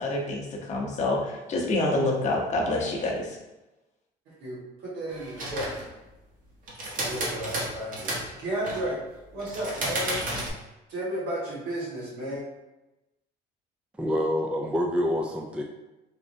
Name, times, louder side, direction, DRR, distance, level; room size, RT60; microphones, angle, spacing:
voice 1, 0.0-3.4, left 2 dB, 45° left, -1 dB, 0.8 m, -27 dB
voice 2, 4.3-5.7 7.0-9.0 9.3-10.3 10.9-12.4, right 1 dB, 80° right, -6 dB, 1.5 m, -33 dB
sound 1, 5.1-5.9 6.7-8.3 8.6-8.9 9.4-10.5, right 1 dB, 55° right, 1.1 m, -32 dB
voice 3, 14.0-15.6, equal, 5° right, 1 dB, 0.3 m, -27 dB
3.6 x 3.0 x 2.6 m, 1.0 s
cardioid pair, 110°, 17 cm